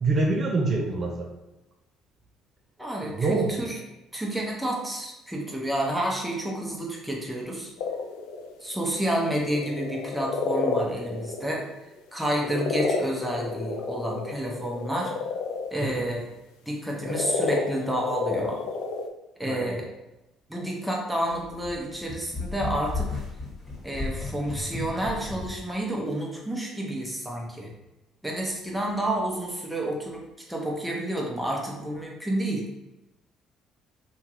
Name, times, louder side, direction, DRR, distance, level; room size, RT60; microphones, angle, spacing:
voice 1, 0.0-1.3 3.0-3.6 15.8-16.1 19.4-19.8, right 3 dB, 45° right, 0 dB, 0.5 m, -26 dB
voice 2, 2.8-3.8 4.1-7.7 8.6-11.6 12.1-15.1 15.7-16.3 16.6-18.6 19.4-19.9 20.5-23.2 23.8-27.7 28.2-32.6, right 1 dB, 5° right, -2 dB, 0.8 m, -30 dB
sound 1, 7.8-8.8 9.2-15.7 16.9-19.1, left 4 dB, 85° left, 0.3 m, -30 dB
sound 2, 21.3-25.6, left 3 dB, 25° left, 1.4 m, -34 dB
2.8 x 2.4 x 2.9 m, 0.95 s
supercardioid pair, 75°, 0 cm